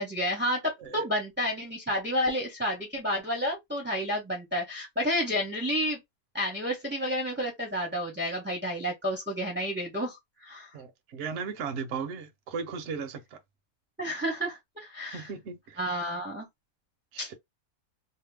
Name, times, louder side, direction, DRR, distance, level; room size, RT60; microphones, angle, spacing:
voice 1, 0.0-6.0 6.3-10.7 14.0-15.3 15.8-16.5 17.2-17.3, equal, 10° right, 0.7 m, -30 dB
voice 2, 10.7-13.4 15.1-16.1 17.1-17.3, right 5 dB, 60° right, 0.9 m, -37 dB
2.8 x 2.1 x 3.3 m
omnidirectional pair, 1.6 m